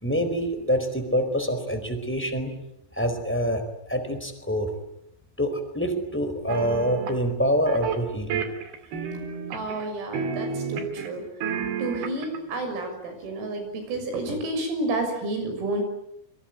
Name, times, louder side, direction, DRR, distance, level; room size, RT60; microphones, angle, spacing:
voice 1, 0.0-2.5 2.9-4.7 5.4-8.4, equal, 5° left, 6 dB, 3.6 m, -26 dB
sound 1, 6.5-7.2 7.7-8.0 8.3-9.9 10.1-11.1 11.4-12.4, right 6 dB, 55° right, 4.0 m, -30 dB
voice 2, 9.5-11.2 11.8-15.8, right 2 dB, 80° right, 6 dB, 9.3 m, -30 dB
27.0 x 24.0 x 9.1 m, 0.82 s
omnidirectional pair, 6.0 m